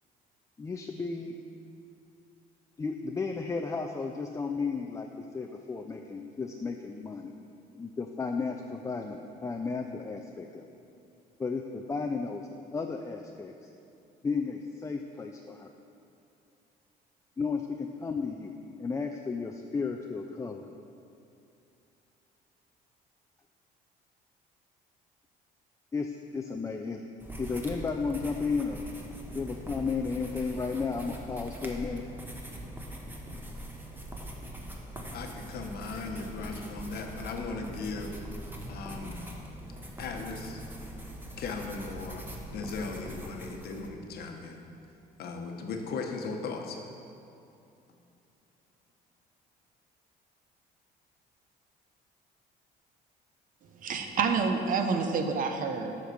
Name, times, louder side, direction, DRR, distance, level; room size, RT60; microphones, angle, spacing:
voice 1, 0.6-1.3 2.8-5.1 5.3-7.3 7.8-10.7 11.4-13.7 14.2-15.7 17.4-20.7 25.9-27.0 27.4-28.9 29.3-32.0, left 4 dB, 20° left, 3 dB, 0.4 m, -33 dB
sound 1, 27.2-43.9, right 1 dB, 10° right, 1.0 m, -42 dB
voice 2, 35.1-38.2 38.7-39.3 40.0-40.6 41.4-44.6 45.2-46.8, left 4 dB, 65° left, 3 dB, 1.1 m, -37 dB
voice 3, 53.8-56.0, right 5 dB, 55° right, 5 dB, 0.8 m, -28 dB
7.6 x 5.2 x 6.6 m, 2.6 s
cardioid pair, 110°, 17 cm